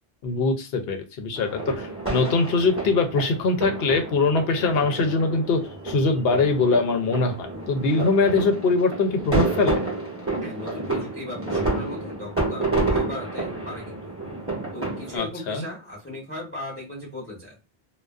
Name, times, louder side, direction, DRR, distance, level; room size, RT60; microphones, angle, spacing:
voice 1, 0.2-9.8 15.1-15.7, left 3 dB, 75° left, 5 dB, 0.8 m, -22 dB
sound 1, 1.4-15.2, right 2 dB, 15° right, 0.8 m, -29 dB
voice 2, 10.4-14.1 14.7-17.5, left 1 dB, 15° left, -4 dB, 0.8 m, -37 dB
2.4 x 2.2 x 2.3 m, 0.28 s
omnidirectional pair, 1.0 m